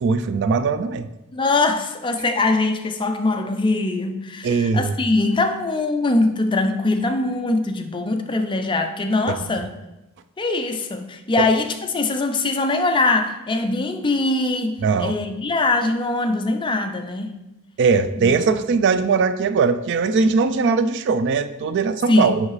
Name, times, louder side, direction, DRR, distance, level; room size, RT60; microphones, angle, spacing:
voice 1, 0.0-1.1 4.4-4.9 9.5-9.6 11.4-11.5 14.8-15.2 17.8-22.4, right 5 dB, 50° right, 12 dB, 0.3 m, -20 dB
voice 2, 1.3-9.7 10.4-17.3 18.1-18.3 22.1-22.4, left 2 dB, 20° left, 6 dB, 0.4 m, -22 dB
7.2 x 5.5 x 3.2 m, 0.97 s
head